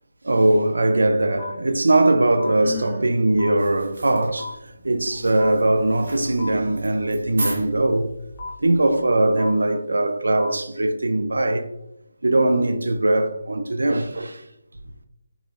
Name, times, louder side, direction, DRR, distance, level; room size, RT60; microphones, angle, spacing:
voice 1, 0.2-8.1 8.6-11.6 12.2-14.4, right 2 dB, 80° right, 0.4 m, -20 dB
sound 1, 1.4-1.5 2.4-2.5 3.4-3.5 4.4-4.5 5.4-5.5 6.4-6.5 7.4-7.5 8.4-8.5 9.4-9.5 10.4-10.5, left 3 dB, 25° left, 0.7 m, -33 dB
Sigh, 2.4-3.1, left 5 dB, ahead, 1.5 m, -35 dB
sound 2, 3.6-9.2, right 1 dB, 65° right, 0.8 m, -37 dB
2.9 x 2.9 x 2.4 m
figure-of-eight pair, 155°, 0 cm